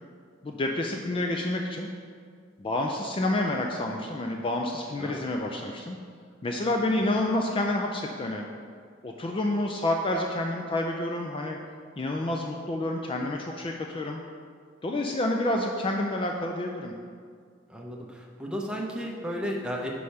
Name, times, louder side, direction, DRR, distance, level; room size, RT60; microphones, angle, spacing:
voice 1, 0.4-1.9 2.6-6.0 6.4-8.4 9.0-11.6 12.0-14.2 14.8-16.9, left 1 dB, 25° left, 2 dB, 0.4 m, -29 dB
voice 2, 17.7-19.9, equal, 5° right, -1 dB, 0.7 m, -34 dB
5.4 x 4.9 x 5.8 m, 2.1 s
head